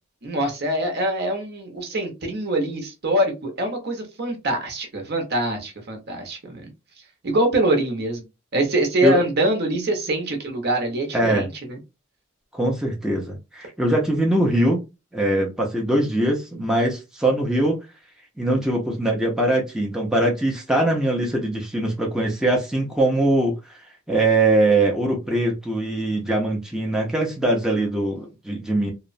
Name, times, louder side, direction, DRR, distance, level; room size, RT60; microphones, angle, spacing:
voice 1, 0.2-6.6 7.2-8.2 8.5-11.8, right 1 dB, 55° right, 0.8 m, -24 dB
voice 2, 11.1-11.5 12.5-14.8 15.1-17.9 18.4-23.7 24.1-28.9, right 1 dB, 5° right, 0.5 m, -22 dB
2.9 x 2.0 x 2.5 m
head